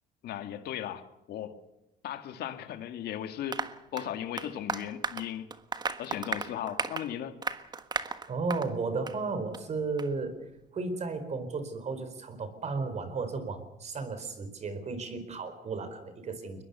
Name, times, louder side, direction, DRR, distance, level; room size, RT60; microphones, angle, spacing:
voice 1, 0.2-1.6 2.0-3.6 3.9-5.5 6.0-7.3, left 10 dB, 70° left, 8 dB, 2.0 m, -37 dB
Applause, 3.5-8.7 9.1-9.2 9.5-9.6 10.0-10.1, right 4 dB, 25° right, 1.4 m, -35 dB
voice 2, 8.3-10.4 10.7-16.6, right 4 dB, 40° right, 10 dB, 4.5 m, -34 dB
22.5 x 21.0 x 6.9 m, 0.90 s
cardioid pair, 110°, 17 cm